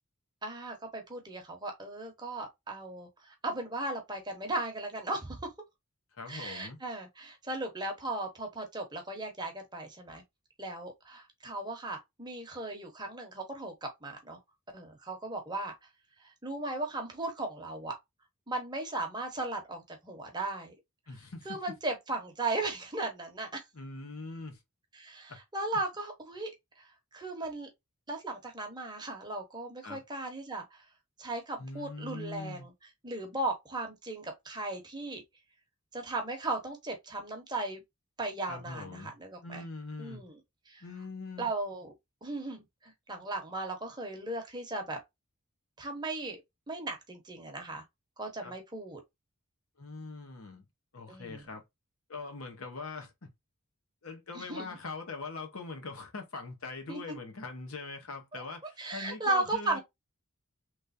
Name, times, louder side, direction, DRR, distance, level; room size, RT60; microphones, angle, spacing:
voice 1, 0.4-5.5 6.3-10.2 10.6-14.4 14.7-15.7 16.2-17.9 18.5-20.7 21.4-23.6 24.9-26.5 26.8-27.7 28.1-30.8 31.2-32.7 33.0-35.2 35.9-37.8 38.2-39.6 40.0-40.4 40.7-40.8 41.4-41.9 42.2-45.0 45.8-46.4 46.7-47.8 48.2-49.0 51.1-51.4 54.3-54.8 56.9-57.0 58.3-58.4 58.8-59.8, right 2 dB, 20° right, 0.9 m, -37 dB
voice 2, 6.1-6.8 21.1-21.6 23.7-24.6 29.8-30.0 31.6-32.7 38.5-39.1 39.4-40.2 40.8-41.5 48.4-48.5 49.8-50.6 50.9-51.6 52.1-53.3 54.0-59.8, left 3 dB, 70° left, 1.0 m, -42 dB
3.3 x 3.2 x 2.5 m
head